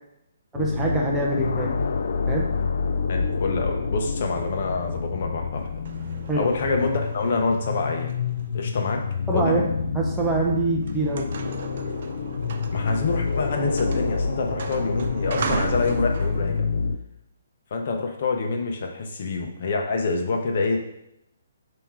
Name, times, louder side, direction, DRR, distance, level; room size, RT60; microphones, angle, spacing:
sound 1, 0.5-17.0, left 4 dB, 70° left, 0.5 m, -28 dB
voice 1, 0.6-1.7 2.3-2.5 6.3-6.5 9.3-9.7 9.9-11.3, right 2 dB, 5° right, -3 dB, 0.8 m, -24 dB
voice 2, 3.1-5.7 6.4-8.1 8.5-9.0 9.3-9.5 12.7-16.6 17.7-20.8, left 3 dB, 50° left, 3 dB, 1.0 m, -26 dB
sound 2, 5.6-9.8 10.4-10.5 10.8-16.6, right 5 dB, 50° right, 0.5 m, -37 dB
7.5 x 3.0 x 4.7 m, 0.82 s
hypercardioid pair, 165°, 0 cm